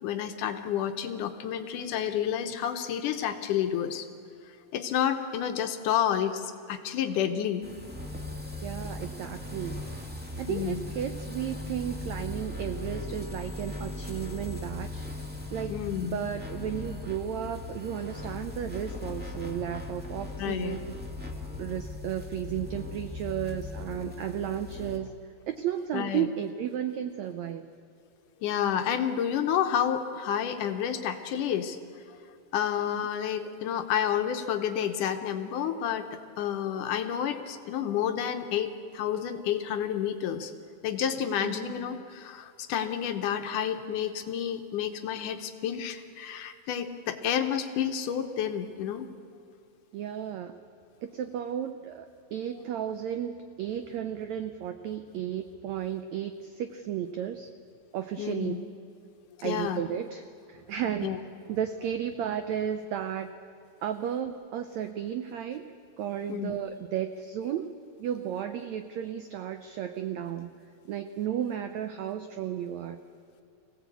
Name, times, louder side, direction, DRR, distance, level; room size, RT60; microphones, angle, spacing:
voice 1, 0.0-4.1 4.7-7.7 10.5-10.8 15.7-16.2 20.4-20.8 25.9-26.3 28.4-31.8 32.5-40.5 40.8-49.1 58.2-58.6 59.4-59.8 61.0-61.2 66.3-66.6, left 9 dB, 70° left, 7 dB, 2.2 m, -30 dB
sound 1, 7.6-25.0, left 2 dB, 5° right, 1.0 m, -39 dB
voice 2, 8.6-9.8 10.4-15.1 15.5-15.8 16.0-20.9 21.6-25.1 25.5-27.7 32.9-33.0 41.4-42.0 49.9-50.5 51.0-52.1 52.3-57.5 57.9-58.5 59.4-63.4 63.8-65.7 66.0-67.7 68.0-70.5 70.8-73.0, right 9 dB, 90° right, 8 dB, 1.5 m, -34 dB
24.5 x 17.0 x 8.3 m, 2.5 s
omnidirectional pair, 4.2 m